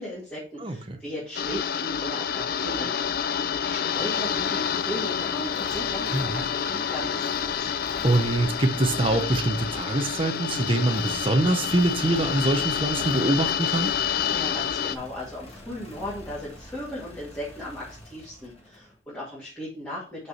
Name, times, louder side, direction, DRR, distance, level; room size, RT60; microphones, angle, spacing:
voice 1, 0.0-7.7 14.3-20.3, left 1 dB, 10° left, 2.2 m, -37 dB
voice 2, 0.6-1.0 6.1-6.4 8.0-13.9, right 2 dB, 30° right, 0.8 m, -24 dB
sound 1, 1.4-15.0, left 8 dB, 50° left, 0.4 m, -28 dB
sound 2, 3.9-19.0, left 1 dB, 30° left, 1.7 m, -45 dB
5.5 x 4.8 x 5.7 m
head